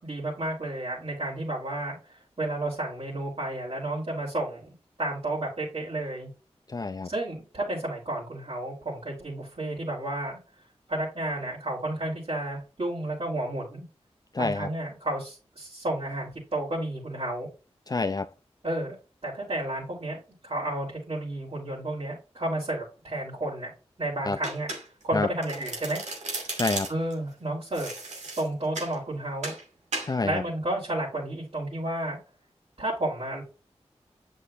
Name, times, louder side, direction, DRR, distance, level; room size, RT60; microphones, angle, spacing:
voice 1, 0.0-2.0 2.4-4.7 5.0-6.3 7.0-10.4 10.9-13.8 14.4-17.5 18.6-19.0 19.2-20.2 20.4-23.7 24.0-24.7 25.0-26.0 26.9-27.9 28.4-29.6 30.2-32.2 32.8-33.4, right 1 dB, 55° right, 3.8 m, -31 dB
voice 2, 6.7-7.1 14.3-14.7 17.9-18.3 24.3-24.4 25.1-25.3 26.6-26.9 30.0-30.4, left 3 dB, 35° left, 0.4 m, -27 dB
Domestic sounds home sounds, 24.4-25.1 25.4-27.1 27.7-28.9 29.4-29.6 29.9-30.1, right 2 dB, 90° right, 2.3 m, -35 dB
8.2 x 5.4 x 2.6 m
cardioid pair, 40°, 11 cm